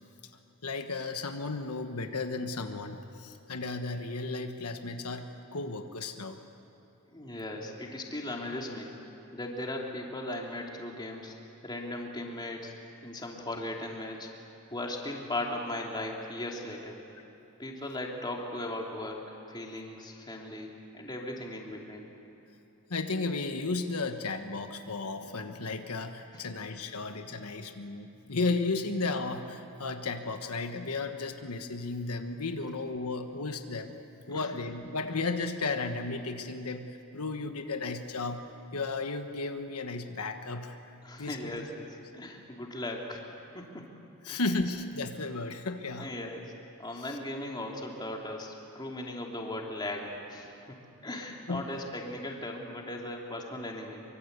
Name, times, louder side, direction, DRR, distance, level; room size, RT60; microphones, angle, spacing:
voice 1, 0.6-6.4 22.9-34.0 34.3-38.4 38.7-40.8 41.2-41.6 44.2-46.1 46.9-47.2 51.5-51.6, left 3 dB, 85° left, 6 dB, 1.3 m, -34 dB
voice 2, 7.1-8.9 9.3-11.3 11.6-12.7 13.0-14.3 14.7-17.0 17.6-22.1 26.3-26.4 34.3-34.5 41.0-41.9 42.1-43.2 43.5-43.9 44.3-44.4 46.0-46.4 46.8-50.8 51.0-54.0, left 1 dB, 20° left, 0 dB, 2.9 m, -38 dB
25.0 x 24.0 x 8.2 m, 2.8 s
head